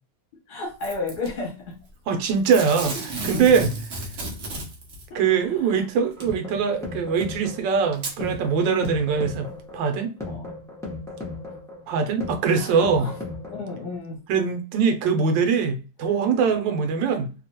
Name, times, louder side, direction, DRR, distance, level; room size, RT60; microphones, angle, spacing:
voice 1, 0.5-1.8 5.1-5.5 8.2-8.4 8.7-9.0 10.2-10.6 12.5-13.1 13.5-14.2 16.5-16.7, left 3 dB, 60° left, 1.4 m, -33 dB
Packing tape duct tape / Tearing, 0.8-1.3 2.5-5.1 6.2-6.3 7.2-7.3 7.9-8.2 8.8-8.9, right 2 dB, 50° right, 0.8 m, -32 dB
voice 2, 2.1-3.8 5.1-9.5 9.7-10.1 11.9-13.1 14.3-17.3, right 6 dB, 80° right, 1.3 m, -22 dB
sound 1, 6.0-13.9, left 2 dB, 5° left, 0.4 m, -36 dB
3.2 x 2.2 x 2.8 m
omnidirectional pair, 2.0 m